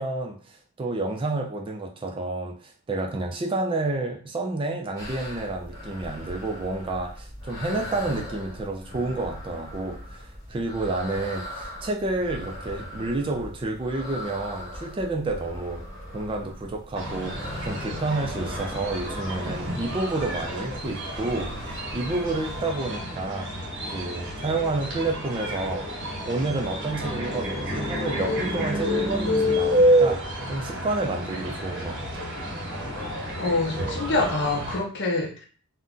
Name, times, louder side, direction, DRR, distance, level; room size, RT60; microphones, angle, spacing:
voice 1, 0.0-15.8 16.1-23.5 23.9-25.9 26.3-30.2 30.5-32.0, right 2 dB, 25° right, 2 dB, 0.3 m, -30 dB
sound 1, 5.0-22.7, left 1 dB, 15° left, 1.0 m, -40 dB
sound 2, 16.9-34.8, equal, 55° right, 0.8 m, -28 dB
voice 2, 33.4-35.5, left 2 dB, 50° left, 1 dB, 0.6 m, -26 dB
2.5 x 2.1 x 3.6 m, 0.42 s
head